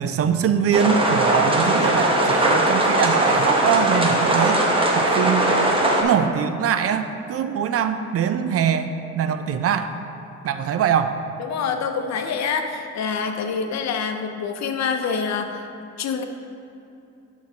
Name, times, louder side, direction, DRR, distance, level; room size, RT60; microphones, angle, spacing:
voice 1, 0.0-4.6 4.9-5.5 6.0-9.9 10.4-11.2, right 8 dB, 50° right, 10 dB, 0.4 m, -23 dB
sound 1, 0.7-6.0, right 1 dB, 20° right, 0.9 m, -19 dB
voice 2, 11.4-15.7 16.0-16.2, left 6 dB, 60° left, 6 dB, 0.7 m, -26 dB
11.5 x 4.6 x 2.8 m, 2.7 s
cardioid pair, 90°, 30 cm